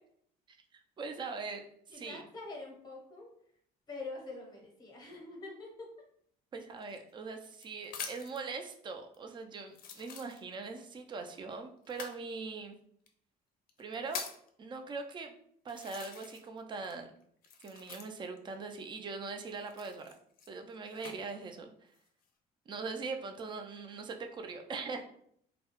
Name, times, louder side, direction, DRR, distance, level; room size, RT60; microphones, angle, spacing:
voice 1, 0.5-1.7 1.9-2.2 6.5-12.7 13.8-14.2 14.6-15.3 15.6-17.1 17.6-20.1 20.5-21.9 22.7-25.0, right 4 dB, 30° right, 5 dB, 0.3 m, -41 dB
voice 2, 1.9-3.6 3.9-6.1, left 3 dB, 25° left, 0 dB, 0.7 m, -45 dB
sound 1, 6.8-8.5 9.1-9.2 9.7-10.8 11.9-12.2 13.1-13.2 13.7-14.5 15.2-15.3 15.7-16.6 16.8-18.4 19.6-21.2 21.8-22.3, left 6 dB, 55° left, 0.5 m, -45 dB
2.3 x 2.0 x 2.9 m, 0.67 s
cardioid pair, 110°, 17 cm